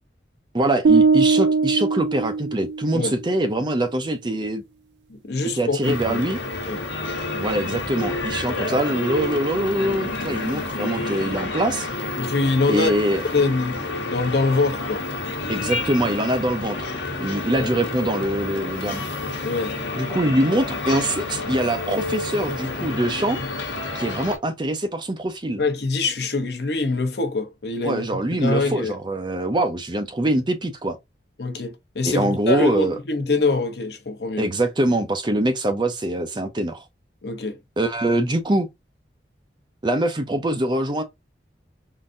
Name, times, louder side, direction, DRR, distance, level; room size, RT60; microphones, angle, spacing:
voice 1, 0.5-4.6 5.6-6.4 7.4-11.9 12.7-13.2 15.5-16.9 17.2-19.1 20.0-23.4 23.9-25.6 27.8-31.0 32.0-33.0 34.4-36.8 37.8-38.7 39.8-41.0, right 1 dB, 25° right, 0.5 m, -23 dB
sound 1, 0.8-3.0, right 4 dB, 75° right, 0.4 m, -19 dB
voice 2, 5.1-6.2 6.6-6.8 12.2-12.9 13.3-13.8 14.1-15.1 17.6-17.7 19.4-19.7 25.6-28.0 28.3-28.9 31.4-34.5 37.2-37.6, left 3 dB, 65° left, 0.8 m, -24 dB
sound 2, 5.8-24.4, left 2 dB, 85° left, 1.1 m, -29 dB
3.8 x 2.6 x 2.4 m
head